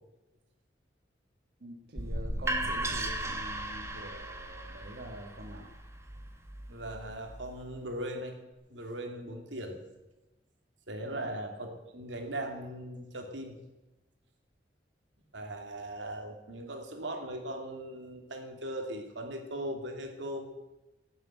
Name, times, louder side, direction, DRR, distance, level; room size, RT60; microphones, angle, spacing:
voice 1, 1.6-5.7 11.0-11.3, equal, 60° right, 1 dB, 1.6 m, -45 dB
sound 1, 2.0-7.8, right 1 dB, 15° right, 1.5 m, -36 dB
voice 2, 6.7-8.4 8.7-9.8 10.9-13.6 15.3-20.5, right 1 dB, 85° right, 3 dB, 2.8 m, -39 dB
16.5 x 7.8 x 9.1 m, 1.0 s
head